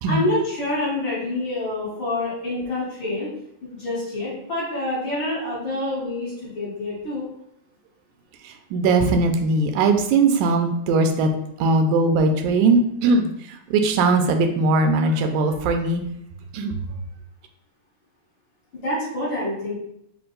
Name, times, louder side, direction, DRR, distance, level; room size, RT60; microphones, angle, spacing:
voice 1, 0.1-3.3 3.6-7.3 18.7-19.7, left 1 dB, 50° left, -8 dB, 1.9 m, -27 dB
voice 2, 8.4-11.3 11.6-13.3 13.7-16.0 16.5-16.7, right 3 dB, 85° right, 5 dB, 2.0 m, -19 dB
5.1 x 2.6 x 3.7 m, 0.74 s
omnidirectional pair, 3.4 m